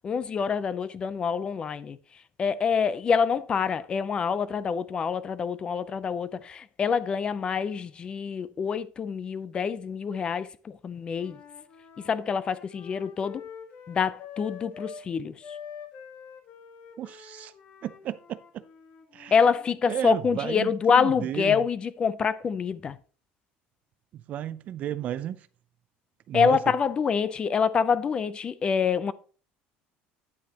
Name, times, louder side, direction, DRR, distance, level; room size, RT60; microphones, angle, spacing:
voice 1, 0.0-2.0 2.4-11.4 12.1-13.4 13.9-15.3 19.3-23.0 26.3-29.1, left 6 dB, 25° left, 0.5 m, -26 dB
Wind instrument woodwind instrument, 11.1-15.0 15.4-19.8, left 7 dB, 45° left, 1.4 m, -46 dB
voice 2, 17.0-17.5 17.8-18.6 19.1-19.4 19.9-21.6 24.1-25.4 26.3-26.6, right 11 dB, 40° right, 0.4 m, -33 dB
9.4 x 8.6 x 2.9 m
cardioid pair, 160°, 4 cm